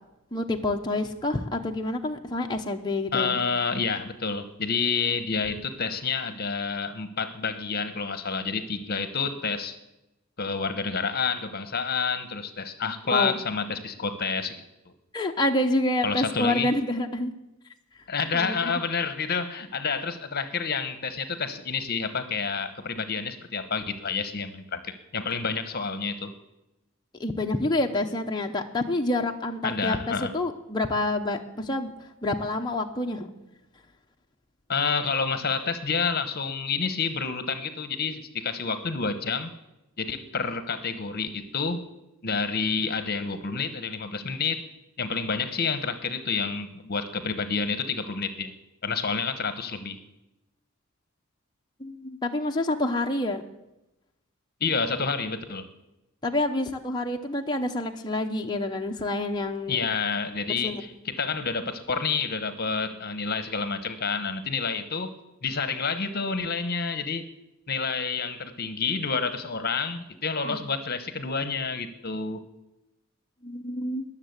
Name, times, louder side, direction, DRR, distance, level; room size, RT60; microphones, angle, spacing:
voice 1, 0.3-3.4 13.1-13.4 15.1-17.3 18.3-18.7 27.2-31.9 32.2-33.3 51.8-53.5 56.2-59.9 60.6-60.7 70.4-70.6 73.4-74.0, left 2 dB, 20° left, 1 dB, 0.9 m, -28 dB
voice 2, 3.1-9.8 10.4-14.6 16.0-16.7 18.1-26.3 29.6-30.3 34.7-39.5 40.0-41.9 42.2-44.6 45.0-48.5 48.8-50.0 54.6-55.7 59.7-65.1 65.4-67.3 67.7-72.4, left 5 dB, 50° left, 11 dB, 1.0 m, -29 dB
21.0 x 7.4 x 8.1 m, 0.94 s
head